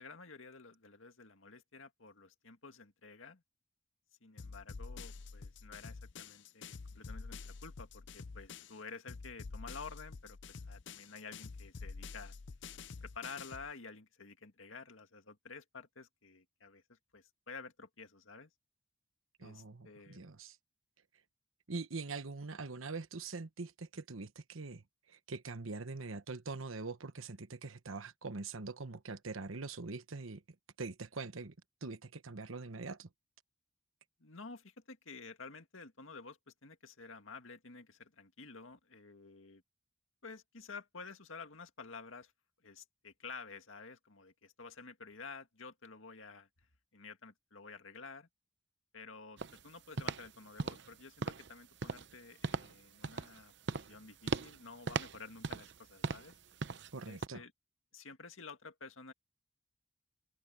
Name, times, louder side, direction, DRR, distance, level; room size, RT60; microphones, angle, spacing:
voice 1, 0.0-3.4 4.2-12.3 13.0-18.5 19.4-20.3 34.2-39.6 40.2-42.3 42.6-46.5 46.9-48.3 48.9-56.4 57.1-57.5 57.9-59.1, left 4 dB, 75° left, 2.1 m, -51 dB
sound 1, 4.4-8.8 9.1-13.7, left 4 dB, 60° left, 0.6 m, -48 dB
voice 2, 19.4-20.6 21.7-30.4 30.8-31.5 31.8-33.1 56.9-57.4, right 3 dB, 85° right, 1.2 m, -43 dB
sound 2, 49.4-49.6 50.0-50.3 50.6-50.9 51.2-51.5 51.8-52.1 52.4-52.7 53.0-53.4 53.7-54.0 54.3-54.6 54.9-55.8 56.0-56.3 56.6-56.9 57.2-57.3, right 4 dB, 55° right, 0.7 m, -38 dB
head